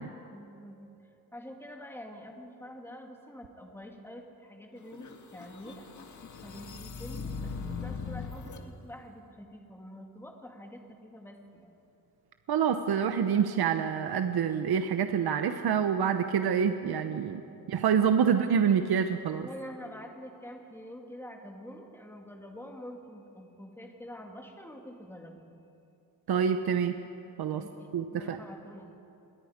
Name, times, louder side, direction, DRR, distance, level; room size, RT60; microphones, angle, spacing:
voice 1, 0.3-5.1 5.3-5.9 6.4-11.7 17.2-17.4 19.4-25.6 27.5-28.9, equal, 5° left, 1 dB, 2.5 m, -46 dB
sound 1, 4.9-8.6, left 5 dB, 50° left, 1.7 m, -40 dB
voice 2, 12.5-17.4 17.7-19.5 26.3-27.0 27.4-27.6 27.9-28.4, right 7 dB, 70° right, 7 dB, 1.0 m, -27 dB
27.5 x 22.0 x 5.2 m, 2.7 s
wide cardioid pair, 135°, 38 cm